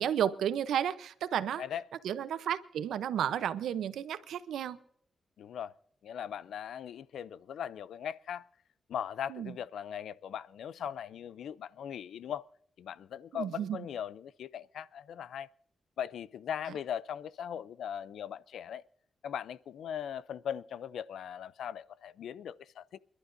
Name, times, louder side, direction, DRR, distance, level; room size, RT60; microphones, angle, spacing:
voice 1, 0.0-1.6 2.0-4.8 9.3-9.6 13.3-13.9, right 9 dB, 90° right, 0.7 m, -32 dB
voice 2, 5.4-5.7 6.0-8.4 8.9-12.4 12.8-15.5 16.0-18.8 19.2-23.0, left 9 dB, 85° left, 0.4 m, -39 dB
28.5 x 11.5 x 2.6 m
cardioid pair, 70°, 0 cm